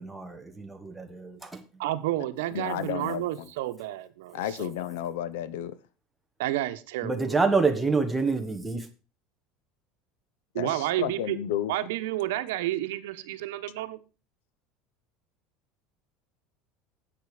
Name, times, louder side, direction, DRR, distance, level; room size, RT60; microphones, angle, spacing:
voice 1, 0.0-1.6 7.0-8.9, right 4 dB, 5° right, 1.4 m, -27 dB
voice 2, 1.8-4.7 6.4-7.5 10.5-11.4 11.7-14.0, right 14 dB, 90° right, 1.1 m, -31 dB
voice 3, 2.5-3.5 4.3-5.8 10.6-11.7, left 11 dB, 85° left, 0.9 m, -32 dB
10.0 x 8.2 x 5.0 m
cardioid pair, 150°, 0 cm